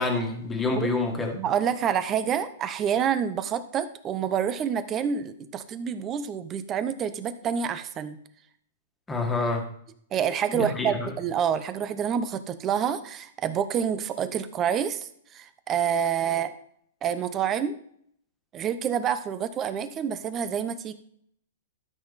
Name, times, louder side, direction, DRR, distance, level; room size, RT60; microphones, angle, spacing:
voice 1, 0.0-1.3 9.1-9.7 10.5-11.1, left 3 dB, 10° left, 2 dB, 1.8 m, -27 dB
voice 2, 1.3-8.2 10.1-16.6 17.0-17.8 18.5-20.9, right 8 dB, 25° right, 11 dB, 0.8 m, -28 dB
13.0 x 6.0 x 4.2 m, 0.66 s
hypercardioid pair, 150°, 0 cm